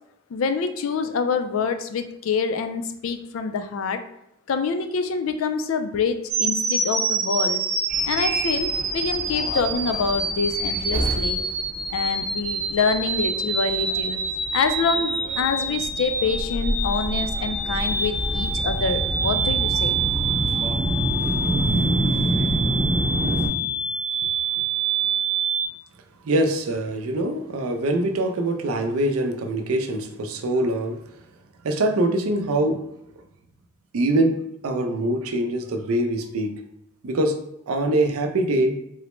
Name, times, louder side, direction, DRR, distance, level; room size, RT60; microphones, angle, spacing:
voice 1, 0.3-4.0 4.5-7.6 8.1-11.4 11.9-14.2 14.5-20.0, left 5 dB, 70° left, 8 dB, 0.3 m, -26 dB
sound 1, 6.3-25.7, right 3 dB, 45° right, 0.8 m, -26 dB
Subway metro underground, 7.9-23.5, right 1 dB, 10° right, 0.6 m, -28 dB
voice 2, 26.2-31.0 31.6-32.8 33.9-34.4 34.6-36.5 37.0-37.4 37.7-38.7, right 1 dB, 85° right, 4 dB, 0.5 m, -23 dB
3.8 x 2.1 x 3.0 m, 0.79 s
head